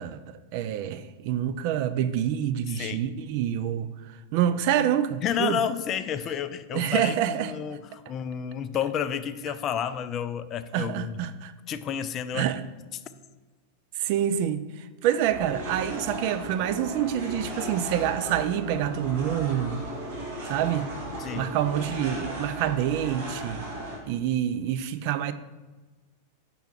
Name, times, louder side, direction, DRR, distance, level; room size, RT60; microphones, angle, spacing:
voice 1, 0.0-3.9 4.3-5.6 6.7-7.5 10.7-11.5 12.3-12.6 14.0-19.9 20.5-20.9 21.3-23.6 24.1-25.3, right 10 dB, 45° right, 0.3 m, -27 dB
voice 2, 2.7-3.0 5.2-11.2 11.7-12.5 12.9-13.0 21.2-21.5, left 8 dB, 30° left, 0.3 m, -31 dB
sound 1, 15.3-24.0, right 1 dB, 60° right, 2.0 m, -36 dB
5.5 x 3.5 x 5.8 m
figure-of-eight pair, 90°, 0 cm